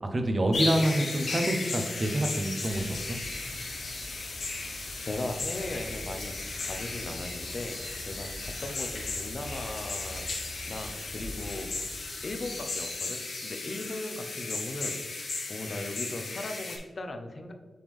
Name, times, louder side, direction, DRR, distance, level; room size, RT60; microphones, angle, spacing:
voice 1, 0.0-3.2, right 1 dB, 35° right, 5 dB, 0.8 m, -27 dB
sound 1, 0.5-16.8, left 3 dB, 75° left, 1.7 m, -36 dB
sound 2, 2.7-12.9, equal, 20° left, 1.4 m, -45 dB
voice 2, 5.1-6.3 6.6-7.8 8.0-10.3 10.6-17.5, left 2 dB, 45° left, 6 dB, 0.7 m, -38 dB
7.8 x 3.5 x 3.5 m, 1.5 s
wide cardioid pair, 95°, 0 cm